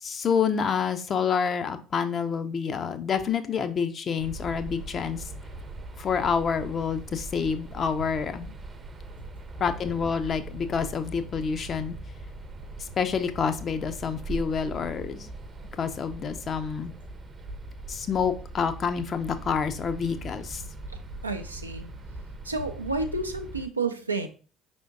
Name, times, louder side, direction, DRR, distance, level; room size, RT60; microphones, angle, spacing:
voice 1, 0.0-5.3 6.0-8.5 9.6-12.0 12.8-15.3 15.8-16.9 17.9-20.6, left 6 dB, 40° left, 10 dB, 0.5 m, -28 dB
sound 1, 4.2-23.7, right 2 dB, 30° right, 0.6 m, -41 dB
voice 2, 21.2-21.9 22.4-24.3, right 3 dB, 90° right, 5 dB, 0.4 m, -30 dB
5.0 x 3.5 x 2.6 m, 0.36 s
figure-of-eight pair, 55°, 0 cm